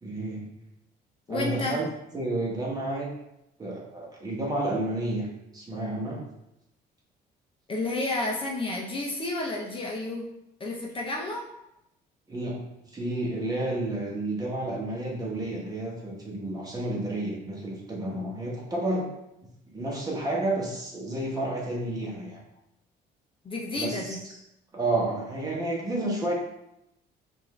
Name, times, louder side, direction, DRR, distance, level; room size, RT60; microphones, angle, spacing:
voice 1, 0.0-0.5 1.3-1.9 2.1-3.1 3.6-5.3 5.5-6.2 12.3-12.6 12.9-19.1 19.7-22.4 23.7-24.2 24.7-26.3, right 2 dB, 20° right, -3 dB, 1.2 m, -30 dB
voice 2, 1.3-1.8 7.7-10.3 10.6-11.5 23.4-24.2, left 2 dB, 30° left, -2 dB, 0.7 m, -31 dB
5.3 x 2.7 x 3.2 m, 0.85 s
cardioid pair, 110°, 17 cm